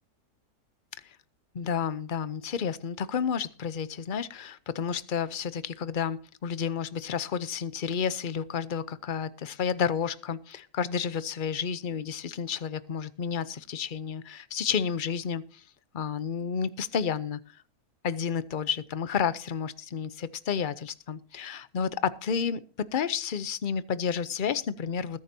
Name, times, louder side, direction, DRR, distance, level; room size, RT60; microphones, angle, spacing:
voice 1, 1.5-15.6 15.9-17.4 18.0-22.6 22.9-25.2, left 7 dB, 45° left, 16 dB, 0.7 m, -31 dB
20.5 x 9.7 x 2.8 m, 0.40 s
omnidirectional pair, 1.6 m